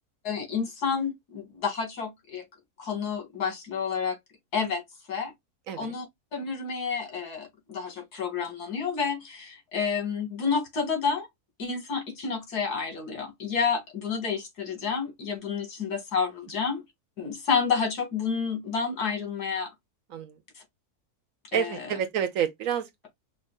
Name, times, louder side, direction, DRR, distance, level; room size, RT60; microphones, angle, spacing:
voice 1, 0.2-2.5 2.8-4.2 4.5-4.8 5.1-5.3 5.8-6.1 6.3-11.3 11.6-16.8 17.2-19.7 21.5-21.9, left 5 dB, 80° left, 2.3 m, -30 dB
voice 2, 21.5-23.1, right 8 dB, 65° right, 1.0 m, -29 dB
5.2 x 2.5 x 2.2 m
omnidirectional pair, 1.6 m